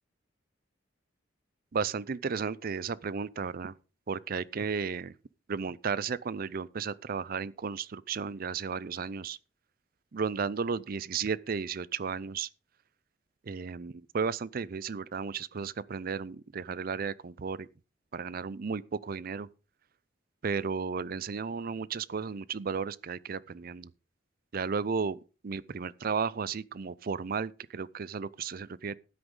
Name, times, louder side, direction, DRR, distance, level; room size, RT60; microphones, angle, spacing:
voice 1, 1.7-3.7 4.1-5.1 5.5-9.4 10.1-12.5 13.4-17.7 18.1-19.5 20.4-23.9 24.5-29.0, right 5 dB, 50° right, 0.5 m, -34 dB
13.0 x 9.5 x 3.8 m
head